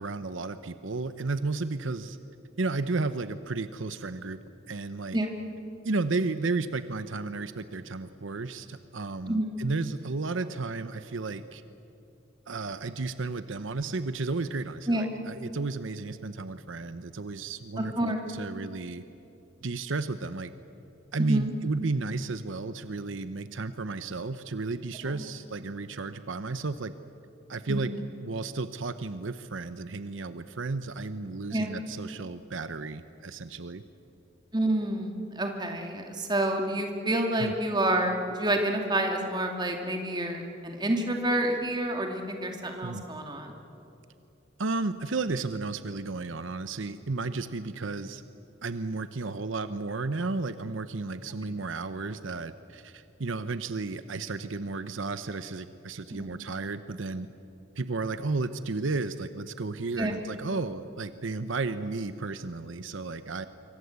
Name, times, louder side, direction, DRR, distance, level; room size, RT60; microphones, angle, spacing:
voice 1, 0.0-2.2 2.6-4.4 4.7-5.2 5.8-11.6 12.5-19.0 19.6-20.5 21.1-26.9 27.5-27.9 28.2-33.8 37.4-37.5 42.8-43.0 44.6-48.2 48.6-57.3 57.8-63.5, right 3 dB, 75° right, 11 dB, 0.8 m, -33 dB
voice 2, 9.3-9.6 14.9-15.1 17.8-18.2 21.2-21.5 25.1-25.2 27.7-27.8 31.5-31.7 34.5-35.1 35.3-43.5 56.2-56.3 60.0-60.2, right 1 dB, 20° right, 3 dB, 2.6 m, -28 dB
26.0 x 24.5 x 8.2 m, 2.8 s
head